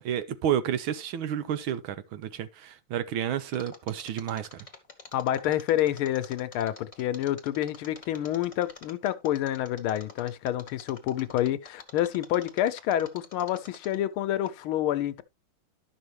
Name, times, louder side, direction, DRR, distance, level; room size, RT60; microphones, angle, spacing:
voice 1, 0.0-4.7, right 10 dB, 75° right, 1.5 m, -31 dB
Mechanisms, 3.5-14.1 14.5-14.6, left 3 dB, 20° left, 1.0 m, -47 dB
voice 2, 5.1-15.2, left 12 dB, 80° left, 1.5 m, -28 dB
11.0 x 6.3 x 3.2 m
omnidirectional pair, 2.4 m